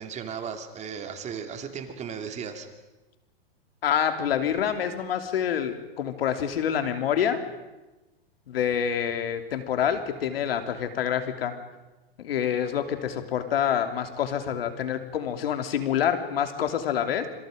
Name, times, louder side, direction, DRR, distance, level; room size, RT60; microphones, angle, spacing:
voice 1, 0.0-2.7, right 7 dB, 25° right, 6 dB, 2.6 m, -36 dB
voice 2, 3.8-7.4 8.5-11.5 12.2-17.3, left 9 dB, 75° left, 7 dB, 3.1 m, -27 dB
27.0 x 26.5 x 5.3 m, 1.1 s
hypercardioid pair, 130°, 30 cm